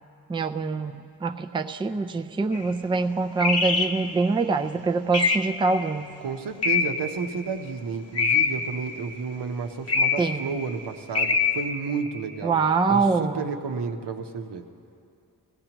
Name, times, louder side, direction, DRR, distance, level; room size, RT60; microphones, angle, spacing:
voice 1, 0.3-6.1 10.2-10.6 12.4-13.5, right 4 dB, 15° right, 7 dB, 0.4 m, -25 dB
sound 1, 2.5-2.7 3.4-4.0 5.1-5.6 6.6-7.2 8.1-8.8 9.9-10.4 11.1-11.7, left 5 dB, 40° left, 0.8 m, -23 dB
voice 2, 6.2-12.6 12.9-14.6, right 5 dB, 85° right, 4 dB, 0.9 m, -31 dB
20.0 x 15.5 x 3.0 m, 2.5 s
wide cardioid pair, 75°, 40 cm